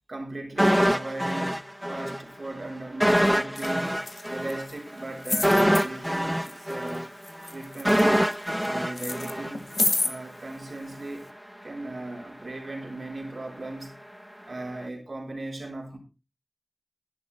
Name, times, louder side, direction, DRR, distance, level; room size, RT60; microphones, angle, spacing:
voice 1, 0.1-7.1 7.5-8.2 8.6-9.7 10.0-11.3 11.6-14.0 14.4-16.0, right 2 dB, 75° right, 4.2 m, -37 dB
sound 1, 0.6-2.2 2.5-2.6 3.0-10.1 10.4-10.5, equal, 5° right, 0.7 m, -24 dB
sound 2, 3.6-3.7 4.0-4.7 5.2-5.8 6.4-7.0 7.2-8.7 9.0-10.1 10.9-11.0, left 3 dB, 85° left, 1.3 m, -29 dB
11.5 x 11.0 x 4.2 m
wide cardioid pair, 45°, 0 cm